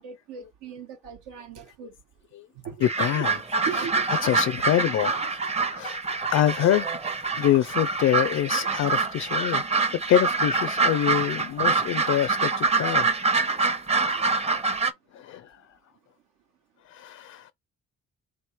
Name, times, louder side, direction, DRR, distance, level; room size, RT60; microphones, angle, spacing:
voice 1, 0.0-1.9 2.6-2.8 3.1-3.2 3.7-4.1 13.9-14.4, right 7 dB, 85° right, 1.0 m, -38 dB
voice 2, 2.8-3.3 4.2-5.2 5.7-6.9 7.4-9.6 10.1-13.1 15.1-15.5 16.9-17.5, left 11 dB, 60° left, 0.4 m, -25 dB
sound 1, 2.8-14.9, right 4 dB, 20° right, 0.6 m, -25 dB
4.0 x 3.2 x 3.0 m
cardioid pair, 90°, 30 cm